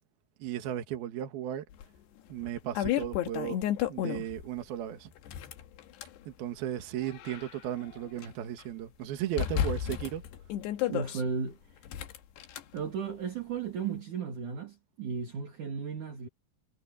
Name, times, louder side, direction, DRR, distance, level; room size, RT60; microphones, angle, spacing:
voice 1, 0.4-1.7 2.3-3.6 3.9-5.1 6.3-10.2, right 11 dB, 70° right, 3.4 m, -35 dB
sound 1, 1.8-1.9 2.4-4.5 5.2-6.2 6.8-8.3 8.6-8.7 9.4-11.2 11.8-12.6, left 11 dB, 90° left, 3.8 m, -32 dB
voice 2, 10.9-11.8 12.7-16.3, right 6 dB, 55° right, 3.3 m, -35 dB
omnidirectional pair, 4.7 m